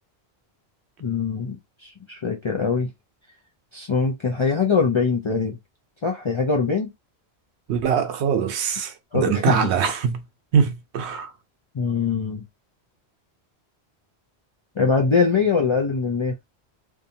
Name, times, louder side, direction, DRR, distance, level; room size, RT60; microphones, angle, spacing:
voice 1, 1.0-2.9 3.7-5.6 6.0-6.9 9.1-9.7 11.7-12.4 14.8-16.3, left 5 dB, 50° left, 0.3 m, -22 dB
voice 2, 7.7-10.2 10.5-11.3, right 7 dB, 85° right, 0.9 m, -22 dB
2.6 x 2.3 x 2.6 m
omnidirectional pair, 1.1 m